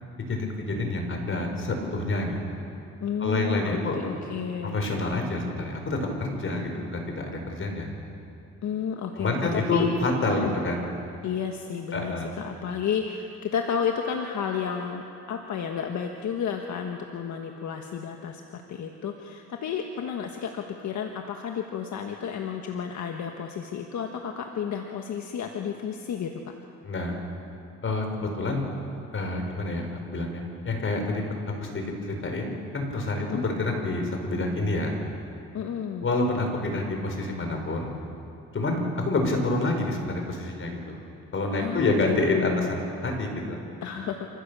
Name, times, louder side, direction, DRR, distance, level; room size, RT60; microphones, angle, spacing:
voice 1, 0.3-2.6 3.2-4.0 4.6-7.9 9.2-10.8 11.9-12.3 26.8-27.1 27.8-28.7 29.1-31.2 31.6-35.0 36.0-38.0 38.5-41.0 41.3-43.6, left 2 dB, 45° left, 3 dB, 4.9 m, -28 dB
voice 2, 3.0-4.8 8.6-9.9 10.3-10.5 11.2-26.5 33.2-33.5 35.5-36.1 41.5-42.7 43.8-44.3, left 7 dB, 70° left, 3 dB, 1.5 m, -32 dB
28.5 x 15.5 x 6.9 m, 2.7 s
cardioid pair, 90°, 30 cm